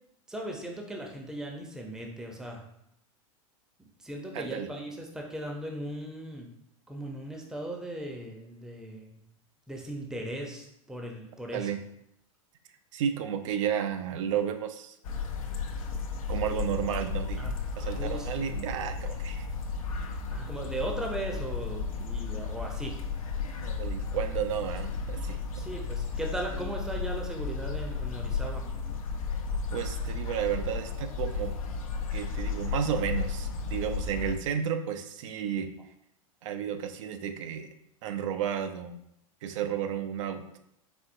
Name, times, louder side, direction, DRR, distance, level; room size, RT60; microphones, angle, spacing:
voice 1, 0.3-2.6 4.0-6.5 6.9-9.2 9.7-11.7 17.4-17.6 17.8-18.5 20.3-23.0 25.5-28.6, right 1 dB, 5° right, 1 dB, 0.7 m, -38 dB
voice 2, 4.3-4.7 11.5-11.8 12.9-15.0 16.3-19.5 23.6-25.6 29.7-31.6 32.1-35.7 36.4-37.7 38.0-39.0 39.4-40.6, right 9 dB, 60° right, 8 dB, 0.5 m, -32 dB
sound 1, 15.0-34.4, left 4 dB, 75° left, 0.7 m, -33 dB
4.3 x 3.7 x 2.6 m, 0.80 s
hypercardioid pair, 100°, 18 cm